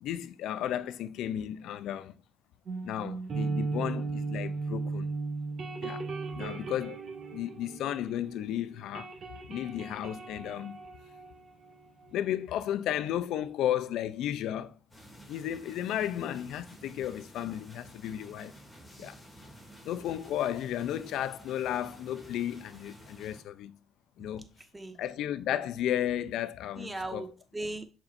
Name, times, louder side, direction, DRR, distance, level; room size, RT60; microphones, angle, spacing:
voice 1, 0.0-2.1 2.8-5.1 5.8-6.1 6.3-7.0 7.3-9.1 9.5-10.8 12.1-14.8 15.3-18.5 19.0-19.2 19.8-23.8 24.2-24.5 25.0-27.2, left 11 dB, 85° left, 0.5 m, -33 dB
sound 1, 2.7-8.5 8.7-12.2, right 3 dB, 55° right, 2.2 m, -36 dB
sound 2, 14.9-23.4, right 1 dB, 10° left, 2.5 m, -52 dB
voice 2, 24.2-25.0 26.7-27.9, right 2 dB, 15° right, 1.2 m, -39 dB
7.2 x 5.4 x 2.6 m
cardioid pair, 90°, 0 cm